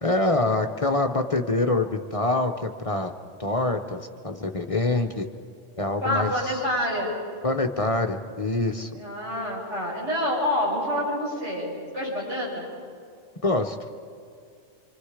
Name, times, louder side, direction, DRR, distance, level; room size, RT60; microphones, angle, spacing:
voice 1, 0.0-3.1 3.4-5.3 5.8-6.5 7.4-8.9 13.4-13.8, left 2 dB, 30° left, 5 dB, 0.8 m, -25 dB
voice 2, 6.0-7.1 8.9-12.7, left 1 dB, 70° right, -6 dB, 8.2 m, -27 dB
26.0 x 25.0 x 5.0 m, 2.4 s
omnidirectional pair, 1.2 m